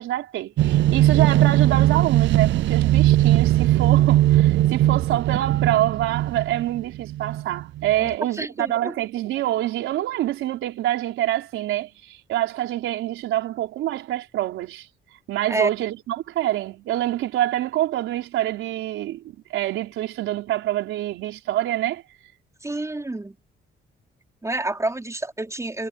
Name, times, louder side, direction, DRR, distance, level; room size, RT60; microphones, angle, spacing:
voice 1, 0.0-14.9 15.3-22.0, right 14 dB, 90° right, 4.2 m, -26 dB
sound 1, 0.6-8.1, right 14 dB, 70° right, 0.5 m, -19 dB
voice 2, 8.4-8.9 15.5-15.7 22.6-23.3 24.4-25.9, right 2 dB, 15° right, 4.9 m, -28 dB
cardioid pair, 90°, 20 cm